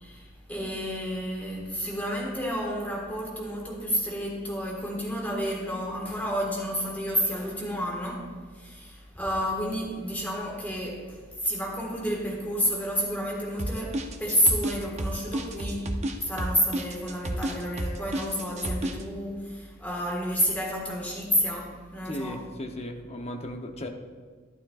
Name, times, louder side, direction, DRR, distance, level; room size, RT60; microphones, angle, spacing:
voice 1, 0.0-15.9 16.2-22.4, equal, 10° left, -3 dB, 1.6 m, -30 dB
sound 1, 13.6-19.0, right 1 dB, 35° right, 0.6 m, -31 dB
voice 2, 22.0-23.9, left 1 dB, 30° left, 4 dB, 0.8 m, -36 dB
11.5 x 11.5 x 2.4 m, 1.5 s
head